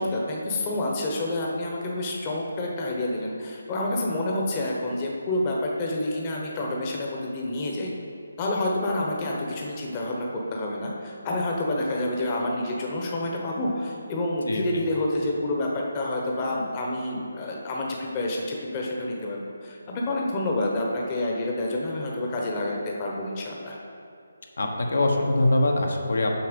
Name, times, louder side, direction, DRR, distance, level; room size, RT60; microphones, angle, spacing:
voice 1, 0.0-7.9 8.4-23.8, left 1 dB, 25° left, -2 dB, 1.0 m, -28 dB
voice 2, 24.6-26.4, left 1 dB, 75° left, 1 dB, 1.2 m, -23 dB
7.2 x 5.6 x 5.2 m, 2.6 s
figure-of-eight pair, 155°, 0 cm